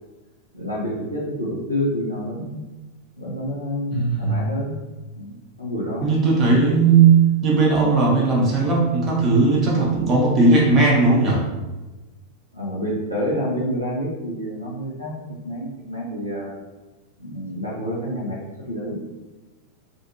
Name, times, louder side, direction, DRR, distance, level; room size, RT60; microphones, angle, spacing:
voice 1, 0.5-2.6 3.2-4.8 5.1-6.1 12.5-16.5 17.2-18.4 18.7-19.0, equal, 90° right, -5 dB, 0.7 m, -28 dB
voice 2, 3.9-4.5 6.0-11.4, right 4 dB, 30° right, -4 dB, 0.9 m, -17 dB
2.6 x 2.5 x 2.8 m, 1.1 s
figure-of-eight pair, 90°, 0 cm